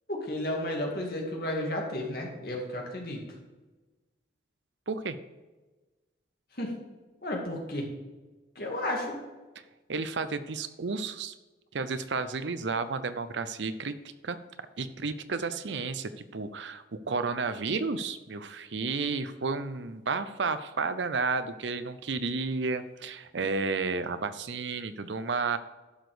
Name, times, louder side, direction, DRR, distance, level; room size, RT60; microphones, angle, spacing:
voice 1, 0.1-3.2 6.6-6.7 7.2-7.9 8.6-9.2, left 1 dB, 55° left, 0 dB, 2.2 m, -32 dB
voice 2, 4.9-5.2 9.9-11.3 11.7-13.9 14.2-14.4 14.8-25.6, right 4 dB, 80° right, 12 dB, 0.7 m, -32 dB
11.5 x 6.2 x 5.0 m, 1.2 s
head